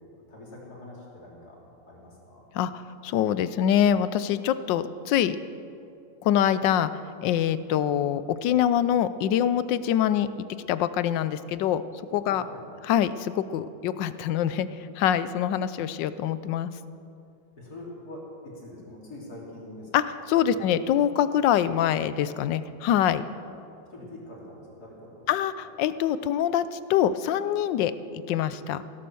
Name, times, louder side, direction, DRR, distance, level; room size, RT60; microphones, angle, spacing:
voice 1, 0.3-1.6 1.9-2.4 12.3-12.6 17.6-19.9 20.4-20.8 23.9-25.3, left 1 dB, 55° left, -3 dB, 3.6 m, -44 dB
voice 2, 2.5-5.4 6.2-6.9 7.2-10.3 10.7-11.8 12.1-12.4 12.8-16.7 19.9-23.2 25.3-27.9 28.3-28.8, left 10 dB, 80° left, 14 dB, 1.3 m, -24 dB
16.5 x 12.0 x 6.9 m, 2.6 s
omnidirectional pair, 2.0 m